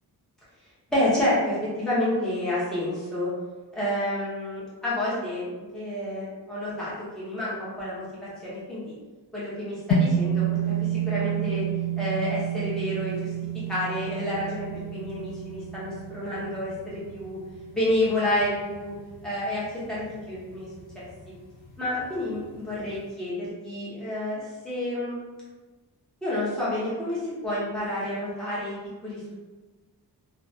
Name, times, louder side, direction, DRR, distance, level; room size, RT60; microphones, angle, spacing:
voice 1, 0.9-3.3 3.7-8.0 8.4-9.0 9.3-11.7 12.0-13.3 13.7-17.4 17.7-18.9 19.2-20.7 20.9-21.1 21.8-25.2 26.2-28.8 29.0-29.4, left 1 dB, ahead, -10 dB, 0.8 m, -29 dB
sound 1, 9.9-18.4, right 6 dB, 70° left, 0.5 m, -29 dB
2.4 x 2.2 x 2.5 m, 1.3 s
wide cardioid pair, 125°, 39 cm